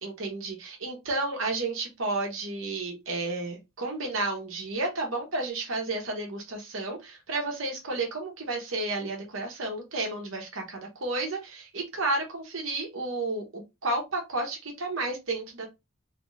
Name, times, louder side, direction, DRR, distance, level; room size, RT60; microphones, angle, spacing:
voice 1, 0.0-15.7, right 2 dB, 65° right, 1 dB, 1.1 m, -32 dB
3.4 x 2.5 x 3.2 m, 0.23 s
head